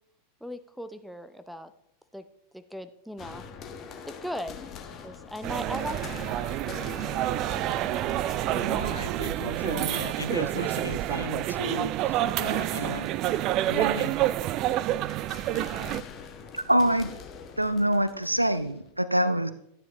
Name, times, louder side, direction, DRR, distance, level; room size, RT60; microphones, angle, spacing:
voice 1, 0.4-1.7 2.1-2.2 2.5-3.4 4.1-4.6 5.0-8.4, equal, ahead, 0.7 m, -39 dB
sound 1, 3.2-18.9, left 6 dB, 30° left, 1.5 m, -46 dB
sound 2, 5.4-16.0, right 13 dB, 40° right, 0.4 m, -28 dB
voice 2, 8.6-13.1 13.6-14.1, left 4 dB, 75° left, 0.3 m, -37 dB
voice 3, 16.5-17.1 17.6-19.5, right 1 dB, 85° right, 0.7 m, -24 dB
13.5 x 9.7 x 3.1 m
figure-of-eight pair, 90°, 0 cm